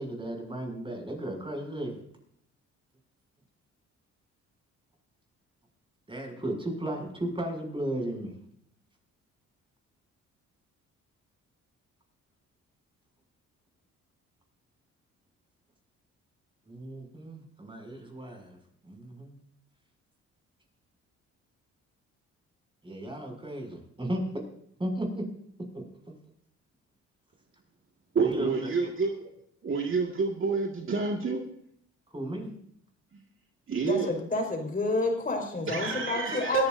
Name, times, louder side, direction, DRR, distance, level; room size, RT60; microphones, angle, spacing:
voice 1, 0.0-2.0 6.1-8.3 16.7-19.4 22.8-24.2 24.8-25.2 25.7-25.8 28.2-28.9 32.1-32.5, right 1 dB, 15° right, 2 dB, 6.5 m, -35 dB
voice 2, 28.1-29.3 29.6-31.4 33.7-34.1 35.7-36.7, right 4 dB, 45° right, 1 dB, 1.9 m, -28 dB
voice 3, 33.8-36.7, left 2 dB, 30° left, 3 dB, 4.4 m, -29 dB
21.0 x 15.0 x 2.6 m, 0.67 s
cardioid pair, 90°, 30 cm